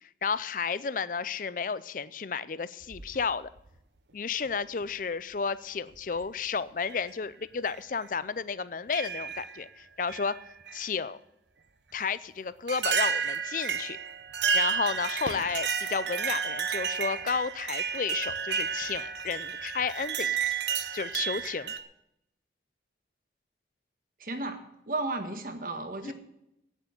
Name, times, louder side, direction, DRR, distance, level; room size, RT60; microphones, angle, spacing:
voice 1, 0.2-3.5 4.1-10.3 10.7-11.2 11.9-14.0 14.5-20.6 20.9-21.7 26.0-26.1, left 5 dB, 50° left, 17 dB, 0.5 m, -32 dB
sound 1, 2.8-3.7 4.8-4.9 5.9-6.2 6.9-7.0 7.7-7.8 8.9-9.6 10.1-10.9 12.0-12.1 12.7-21.8, right 7 dB, 85° right, 0.9 m, -31 dB
voice 2, 24.2-26.1, right 2 dB, 50° right, 6 dB, 1.5 m, -34 dB
9.5 x 8.2 x 9.6 m, 0.81 s
head